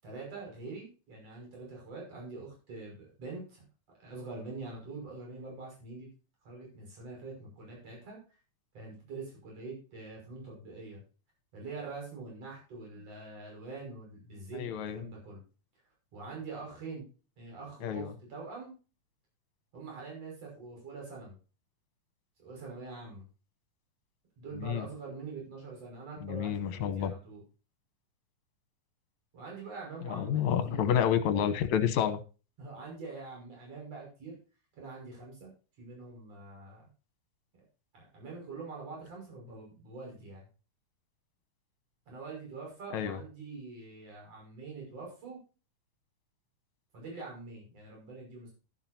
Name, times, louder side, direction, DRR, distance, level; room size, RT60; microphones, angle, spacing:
voice 1, 0.0-3.6 4.0-6.1 6.4-8.2 8.7-11.0 11.5-15.4 16.1-17.1 17.4-18.7 19.7-21.3 22.4-23.2 24.4-27.4 29.3-31.1 32.6-34.4 34.8-35.5 35.8-36.8 37.9-40.5 42.1-45.4 46.9-48.5, right 3 dB, 50° right, 6.9 m, -44 dB
voice 2, 14.5-15.0 17.8-18.1 24.6-24.9 26.2-27.1 30.1-32.2 42.9-43.2, left 9 dB, 70° left, 2.2 m, -29 dB
12.5 x 11.0 x 2.8 m
omnidirectional pair, 3.6 m